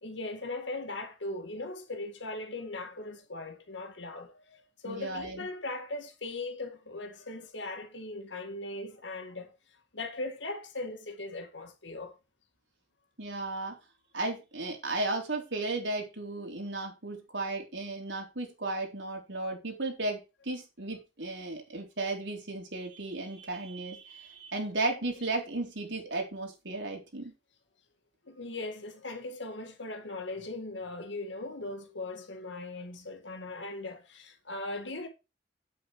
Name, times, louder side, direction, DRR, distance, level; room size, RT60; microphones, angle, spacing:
voice 1, 0.0-9.5 9.9-12.1 28.3-35.1, left 2 dB, 75° left, 2.1 m, -39 dB
voice 2, 4.8-5.5 13.2-13.8 14.1-27.3, right 2 dB, 75° right, 3.9 m, -35 dB
8.7 x 8.0 x 4.6 m
head